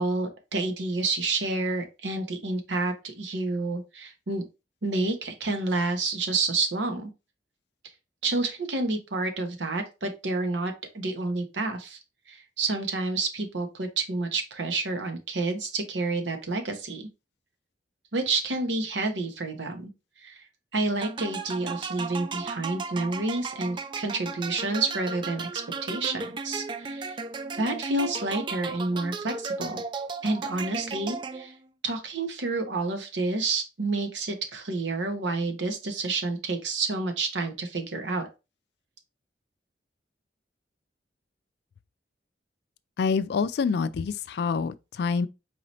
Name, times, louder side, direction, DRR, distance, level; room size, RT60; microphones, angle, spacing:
voice 1, 0.0-4.4 4.8-7.1 8.2-12.0 12.3-17.1 18.1-19.9 20.2-20.4 20.7-27.2 27.5-29.8 30.2-31.5 31.8-38.3, right 3 dB, 85° right, 0.9 m, -29 dB
sound 1, 21.0-31.7, right 4 dB, 25° right, 0.3 m, -35 dB
voice 2, 43.0-45.3, left 5 dB, 65° left, 0.3 m, -26 dB
4.7 x 2.8 x 3.0 m
head